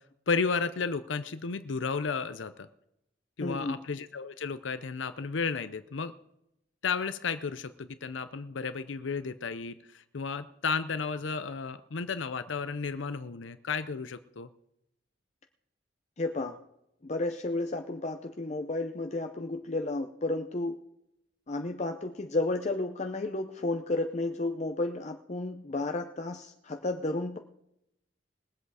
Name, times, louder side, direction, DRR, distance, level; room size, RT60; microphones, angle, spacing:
voice 1, 0.3-2.7 3.4-6.1 6.8-14.5, left 5 dB, 90° left, 12 dB, 0.6 m, -33 dB
voice 2, 3.4-3.8 16.2-16.6 17.0-20.8 21.5-27.4, left 2 dB, 40° left, 5 dB, 0.7 m, -32 dB
21.0 x 8.1 x 4.9 m, 0.81 s
head